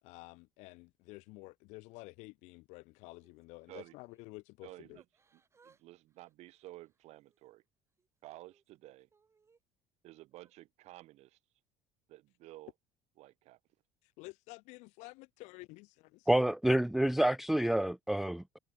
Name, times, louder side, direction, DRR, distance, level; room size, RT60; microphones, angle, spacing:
voice 1, 0.0-5.0 14.0-16.3, left 24 dB, 75° left, 1.2 m, -51 dB
Yell / Crying sobbing, 3.1-4.3 4.9-5.8 6.1-7.5 8.0-9.6 10.3-10.5, right 5 dB, 20° right, 7.7 m, -70 dB
voice 2, 4.6-5.0 5.6-7.6 8.2-9.1 10.0-11.4 12.1-12.7 13.2-13.6, right 17 dB, 65° right, 7.9 m, -52 dB
voice 3, 16.3-18.6, right 1 dB, ahead, 0.3 m, -28 dB
cardioid pair, 130°, 12 cm